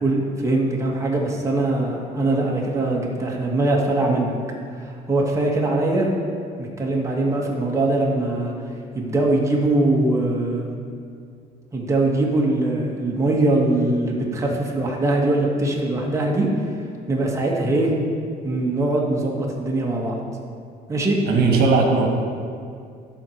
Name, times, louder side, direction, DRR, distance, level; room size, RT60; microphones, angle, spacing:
voice 1, 0.0-4.3 4.8-6.1 6.6-8.5 8.9-10.7 11.7-16.5 17.1-17.9 18.4-20.2 20.9-21.2, right 2 dB, 15° right, -2 dB, 1.6 m, -22 dB
voice 2, 21.3-22.1, right 4 dB, 70° right, 1 dB, 1.4 m, -18 dB
11.0 x 4.4 x 6.5 m, 2.3 s
cardioid pair, 110°, 17 cm